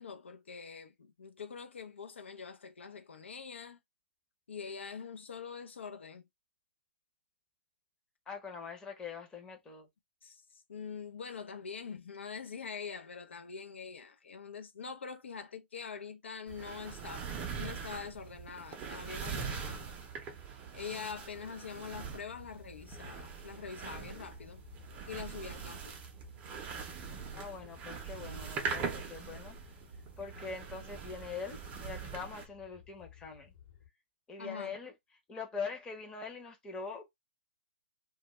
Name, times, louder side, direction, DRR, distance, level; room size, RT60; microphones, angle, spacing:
voice 1, 0.0-3.8 4.5-6.2 10.2-17.3 17.6-19.8 20.7-24.6 25.1-26.0 34.4-34.8, left 6 dB, 75° left, 0.5 m, -44 dB
voice 2, 8.3-9.9 27.4-29.6 30.2-33.5 34.3-34.9 35.3-37.1, left 5 dB, 10° left, 0.7 m, -43 dB
sound 1, 16.5-32.4, right 6 dB, 25° right, 0.6 m, -42 dB
sound 2, 22.3-33.9, left 9 dB, 50° left, 1.0 m, -57 dB
2.2 x 2.1 x 2.9 m
hypercardioid pair, 130°, 6 cm